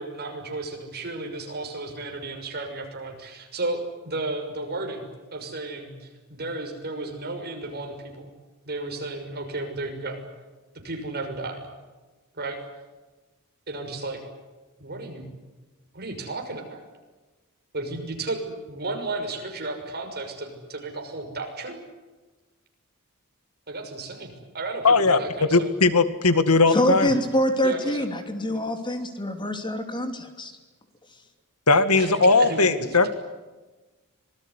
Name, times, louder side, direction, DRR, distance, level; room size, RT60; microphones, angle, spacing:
voice 1, 0.0-8.3 8.6-10.2 10.8-11.7 12.3-12.6 13.7-14.2 14.8-15.3 15.9-16.8 17.7-21.8 23.7-25.7 27.6-28.1 28.5-28.6 32.0-32.9, right 2 dB, 45° right, 3 dB, 6.2 m, -33 dB
voice 2, 24.8-25.2 25.5-27.1 31.7-33.1, left 3 dB, 80° left, 11 dB, 2.0 m, -18 dB
voice 3, 26.7-30.5, left 1 dB, 20° left, 7 dB, 2.9 m, -25 dB
26.0 x 20.5 x 9.9 m, 1.2 s
head